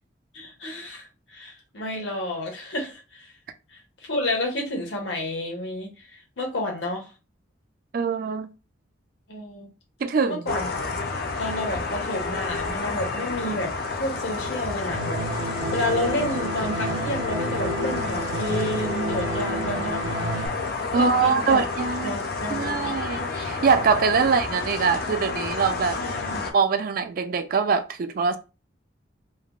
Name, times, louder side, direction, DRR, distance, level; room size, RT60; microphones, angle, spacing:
voice 1, 0.3-3.3 3.7-6.1 6.4-7.1 9.3-9.7 10.3-10.8 11.4-13.7 14.0-20.1 20.9-21.6 22.0-23.0 24.2-24.3 26.0-26.5, left 1 dB, 70° left, 0.9 m, -30 dB
voice 2, 7.9-8.5 10.0-10.4 20.9-22.2 22.5-26.0 26.5-28.4, right 5 dB, 50° right, 0.3 m, -23 dB
sound 1, 10.5-26.5, left 3 dB, 50° left, 0.4 m, -30 dB
sound 2, 14.9-20.5, right 2 dB, 70° right, 0.7 m, -31 dB
3.3 x 2.0 x 2.3 m
head